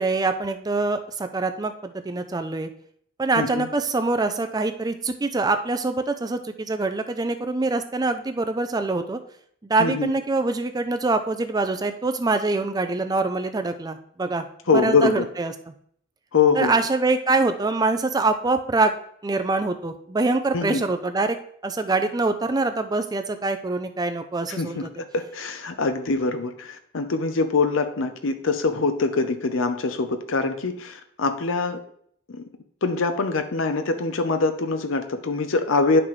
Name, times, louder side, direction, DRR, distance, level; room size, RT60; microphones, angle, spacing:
voice 1, 0.0-2.7 3.2-9.2 9.6-14.5 14.7-15.5 16.5-18.9 19.2-21.4 21.6-24.9, right 3 dB, 20° right, 8 dB, 0.4 m, -24 dB
voice 2, 3.4-3.7 9.8-10.1 14.7-15.3 16.3-16.7 20.5-20.8 24.5-31.8 32.3-32.4 32.8-36.0, left 4 dB, 70° left, 7 dB, 0.7 m, -23 dB
10.5 x 6.0 x 3.2 m, 0.65 s
head